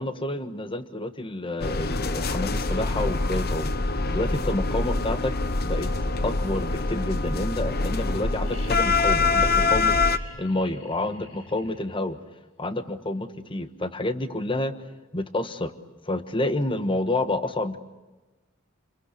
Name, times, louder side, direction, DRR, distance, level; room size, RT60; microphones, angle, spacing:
voice 1, 0.0-3.7 4.1-5.9 6.2-10.0 10.4-12.2 12.6-14.7 15.1-15.7 16.1-17.8, left 2 dB, 25° left, 11 dB, 1.3 m, -29 dB
sound 1, 1.6-10.2, left 3 dB, 50° left, 1.1 m, -25 dB
sound 2, 8.5-12.2 13.9-14.0, left 2 dB, 75° left, 6.7 m, -46 dB
28.0 x 22.0 x 8.3 m, 1.2 s
head